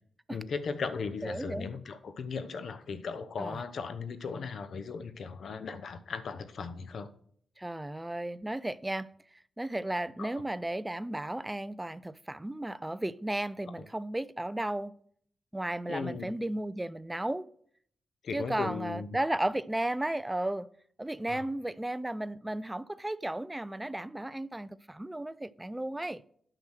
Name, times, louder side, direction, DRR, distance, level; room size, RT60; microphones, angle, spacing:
voice 1, 0.3-7.1 10.2-10.3 15.9-16.3 18.2-19.2 21.3-21.4, left 5 dB, 65° left, 0.9 m, -37 dB
voice 2, 1.2-1.7 3.4-3.6 7.6-9.1 9.6-15.0 15.5-17.5 18.3-20.7 21.0-26.2, right 1 dB, 10° right, 0.4 m, -34 dB
8.8 x 6.1 x 6.3 m
wide cardioid pair, 120°, 0 cm